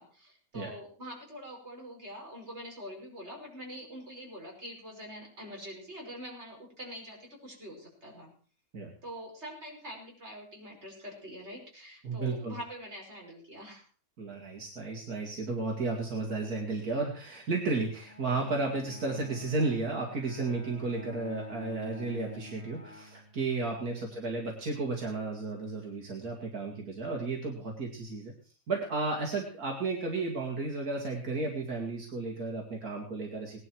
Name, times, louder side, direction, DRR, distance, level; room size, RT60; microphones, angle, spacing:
voice 1, 0.0-8.3 9.0-13.8 24.0-24.2, equal, 45° right, -2 dB, 5.7 m, -45 dB
voice 2, 12.0-12.6 14.2-28.3 28.7-33.6, right 3 dB, 80° right, 0 dB, 2.6 m, -33 dB
Bowed string instrument, 18.0-23.8, left 1 dB, 45° left, 3.1 m, -48 dB
19.0 x 11.5 x 4.6 m, 0.42 s
omnidirectional pair, 1.5 m